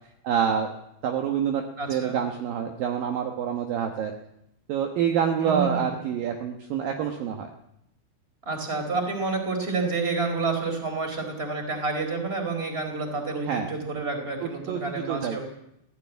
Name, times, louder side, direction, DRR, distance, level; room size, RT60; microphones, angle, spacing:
voice 1, 0.2-0.7 1.0-1.6 1.9-4.1 4.7-7.5 13.4-13.7 14.7-15.4, right 8 dB, 70° right, 3 dB, 2.2 m, -27 dB
voice 2, 1.8-2.2 5.4-5.9 8.4-15.4, right 3 dB, 15° right, 4 dB, 3.7 m, -29 dB
17.5 x 15.5 x 9.4 m, 0.81 s
omnidirectional pair, 5.9 m